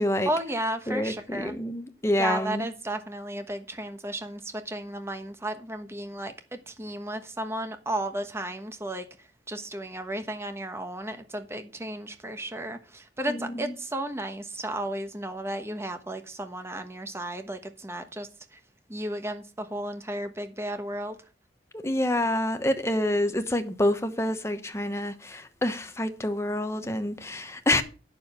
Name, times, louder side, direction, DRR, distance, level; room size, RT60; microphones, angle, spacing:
voice 1, 0.2-1.5 2.2-6.3 6.7-18.6 18.9-21.2, right 1 dB, 15° right, 1.2 m, -34 dB
voice 2, 0.9-2.7 13.3-13.7 21.7-27.8, left 1 dB, 15° left, 1.1 m, -27 dB
9.3 x 7.0 x 5.7 m
head